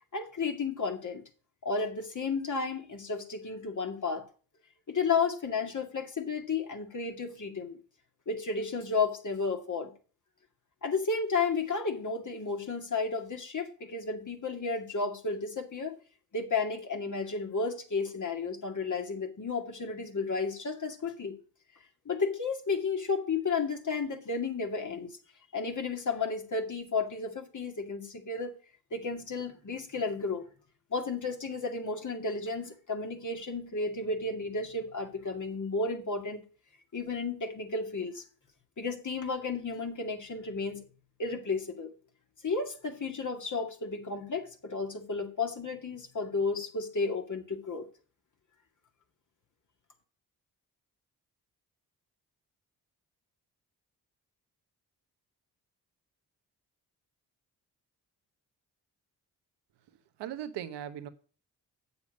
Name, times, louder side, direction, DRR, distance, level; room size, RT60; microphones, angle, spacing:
voice 1, 0.1-1.2 1.6-4.3 4.9-7.8 8.3-9.9 10.8-16.0 16.3-21.4 22.1-25.2 25.5-28.5 28.9-30.4 30.9-36.4 36.9-38.2 38.8-40.8 41.2-41.9 42.4-47.9, left 4 dB, 45° left, 2.2 m, -32 dB
voice 2, 60.2-61.1, right 10 dB, 90° right, 1.0 m, -38 dB
8.2 x 7.0 x 5.3 m
supercardioid pair, 50°, 41 cm